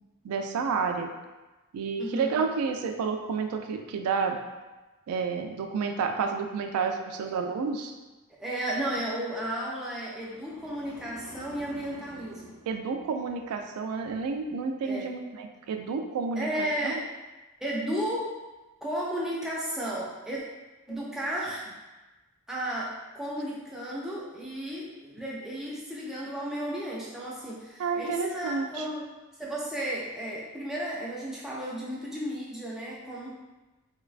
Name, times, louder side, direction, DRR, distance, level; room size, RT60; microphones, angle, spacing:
voice 1, 0.2-1.1 1.7-4.4 5.1-7.9 12.7-17.0 27.8-28.9, right 5 dB, 85° right, 6 dB, 0.3 m, -30 dB
voice 2, 2.0-2.4 8.4-12.6 14.8-15.1 16.4-17.1 17.6-18.4 18.8-20.4 20.9-21.8 22.5-29.1 29.4-33.3, right 1 dB, ahead, -6 dB, 0.4 m, -33 dB
sound 1, 10.2-13.6 14.0-14.4, equal, 70° left, 0.5 m, -49 dB
3.1 x 2.2 x 2.4 m, 1.1 s
head